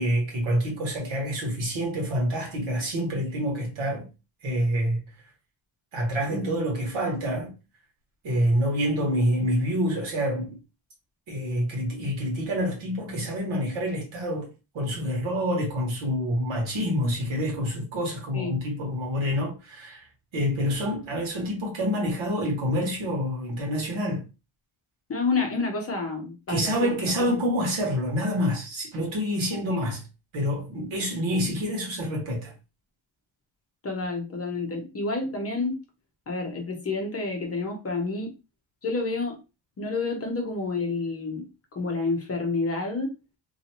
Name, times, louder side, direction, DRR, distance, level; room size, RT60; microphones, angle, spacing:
voice 1, 0.0-4.1 4.4-5.0 5.9-7.5 8.2-10.6 11.3-14.5 14.7-20.0 20.3-24.2 26.5-30.0 30.3-32.5, equal, 70° right, 1.7 m, -27 dB
voice 2, 6.3-6.6 8.9-9.1 18.3-18.6 25.1-26.9 27.2-27.3 29.7-29.9 33.8-35.8 36.3-38.3 38.8-39.4 39.8-41.5 41.8-43.1, left 3 dB, 30° left, 0.7 m, -29 dB
3.1 x 2.7 x 2.9 m
wide cardioid pair, 165°, 49 cm